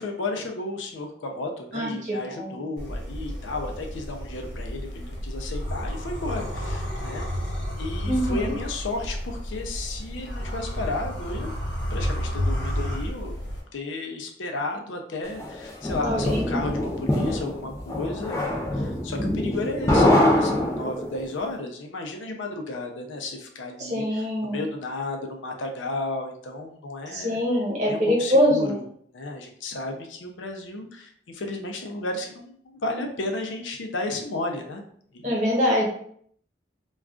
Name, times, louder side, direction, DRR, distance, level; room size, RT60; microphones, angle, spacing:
voice 1, 0.0-7.2 7.8-11.5 11.9-13.3 13.7-27.4 27.9-28.8 29.1-34.8 35.1-35.4, left 2 dB, 85° left, 3 dB, 0.5 m, -33 dB
voice 2, 1.7-2.5 8.0-8.5 16.0-16.7 23.8-24.6 27.1-28.8 35.2-35.8, equal, 40° right, -4 dB, 1.0 m, -24 dB
sound 1, 2.8-13.6, equal, 70° left, 1.0 m, -31 dB
sound 2, 15.4-21.3, left 1 dB, 15° left, 0.5 m, -24 dB
2.3 x 2.3 x 3.6 m, 0.63 s
head